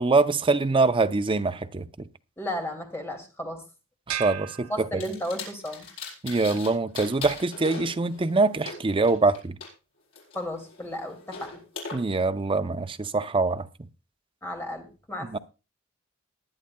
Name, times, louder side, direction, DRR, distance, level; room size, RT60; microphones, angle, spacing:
voice 1, 0.0-2.1 4.1-5.0 6.2-9.6 11.9-13.9 15.2-15.4, right 3 dB, 25° right, 0.5 m, -24 dB
voice 2, 2.4-3.6 4.7-5.9 10.3-11.6 14.4-15.4, equal, 10° left, 2.3 m, -34 dB
sound 1, 4.1-5.6, right 11 dB, 85° right, 0.6 m, -36 dB
sound 2, 5.0-6.7 6.9-9.7 10.1-11.9, left 4 dB, 80° left, 5.4 m, -40 dB
20.0 x 10.5 x 2.2 m
head